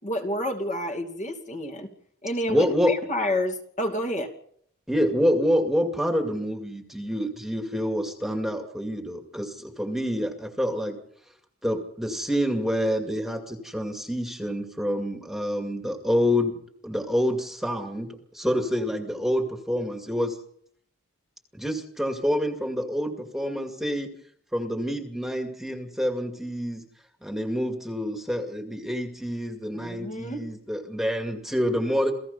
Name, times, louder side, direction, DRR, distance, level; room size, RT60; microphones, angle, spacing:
voice 1, 0.0-1.9 2.2-4.3 18.4-18.6 29.7-30.5, left 1 dB, 35° left, 3 dB, 2.7 m, -29 dB
voice 2, 2.5-2.9 4.9-11.0 11.6-16.6 16.8-18.1 18.3-20.4 21.5-24.1 24.5-26.8 27.2-32.1, equal, ahead, 4 dB, 2.3 m, -27 dB
28.5 x 17.0 x 5.5 m, 0.66 s
head